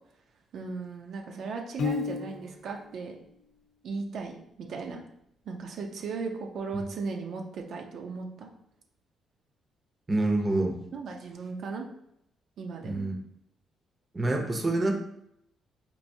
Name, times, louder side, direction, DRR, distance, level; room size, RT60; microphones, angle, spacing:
voice 1, 0.5-3.2 3.8-5.0 5.5-8.5 10.9-11.8 12.6-13.1, right 4 dB, 70° right, 1 dB, 0.5 m, -37 dB
Piano, 1.8-2.8, left 5 dB, 65° left, 0.6 m, -32 dB
voice 2, 10.1-10.8 12.8-13.1 14.1-14.9, right 2 dB, 25° right, 3 dB, 0.6 m, -26 dB
4.4 x 2.6 x 2.7 m, 0.75 s
cardioid pair, 90°, 0 cm